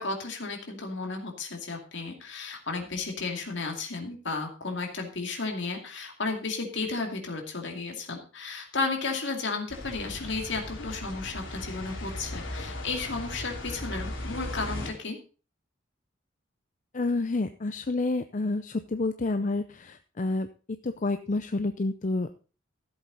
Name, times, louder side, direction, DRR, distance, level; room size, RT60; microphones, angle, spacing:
voice 1, 0.0-15.2, left 3 dB, 65° left, 3 dB, 2.5 m, -33 dB
sound 1, 9.7-14.9, left 1 dB, 90° left, 3.2 m, -37 dB
voice 2, 16.9-20.5 20.8-22.3, left 2 dB, 40° left, 9 dB, 0.5 m, -29 dB
14.5 x 8.0 x 4.1 m, 0.36 s
head